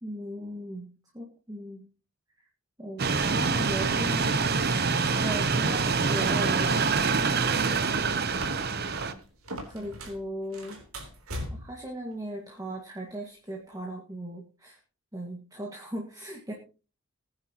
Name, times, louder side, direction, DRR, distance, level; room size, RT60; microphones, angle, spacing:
voice 1, 0.0-1.8 2.8-4.8 5.0-6.7 8.0-8.2 9.7-10.8 11.5-14.8 15.1-16.5, right 1 dB, 15° right, 0 dB, 1.8 m, -37 dB
sound 1, 3.0-9.1, right 4 dB, 45° right, 0.9 m, -25 dB
sound 2, 7.4-10.2 10.5-11.8, right 1 dB, 80° right, 3.7 m, -39 dB
20.5 x 9.8 x 3.0 m, 0.35 s
head